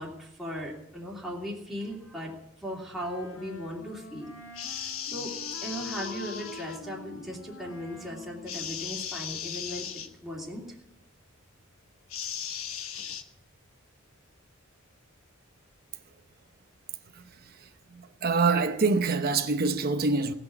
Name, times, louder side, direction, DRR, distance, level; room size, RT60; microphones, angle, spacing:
voice 1, 0.0-4.3 4.7-5.4 5.6-10.6, equal, ahead, 2.8 m, -38 dB
Wind instrument woodwind instrument, 2.9-9.5, left 2 dB, 70° left, 1.8 m, -46 dB
sound 1, 4.5-6.8 8.5-10.1 12.1-13.2, left 8 dB, 90° left, 1.2 m, -37 dB
voice 2, 17.9-20.3, right 4 dB, 50° right, 0.9 m, -25 dB
18.5 x 6.2 x 8.3 m
head